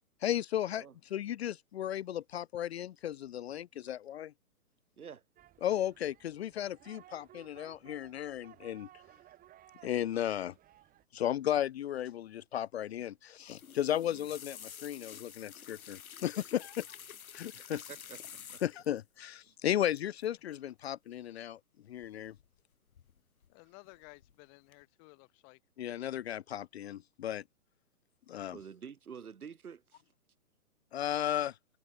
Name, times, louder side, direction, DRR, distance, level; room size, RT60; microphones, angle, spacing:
voice 1, 0.2-0.8 1.1-4.3 5.6-8.9 9.8-10.5 11.1-16.9 17.3-17.8 18.6-21.6 21.9-22.3 25.8-27.4 28.3-28.6 30.9-31.6, left 11 dB, 45° left, 0.9 m, -35 dB
sound 1, 5.4-11.1, right 13 dB, 20° right, 7.7 m, -59 dB
sound 2, 13.4-19.0 19.9-20.3 20.5-20.8 22.0-22.6 22.9-23.5 23.9-24.3 24.7-24.8, left 8 dB, 70° left, 3.3 m, -50 dB
voice 2, 17.5-18.2 18.5-18.6 19.5-19.6 28.5-30.0, right 7 dB, 75° right, 4.2 m, -48 dB
voice 3, 23.5-25.6, left 40 dB or more, 30° left, 3.0 m, -56 dB
hypercardioid pair, 145°, 44 cm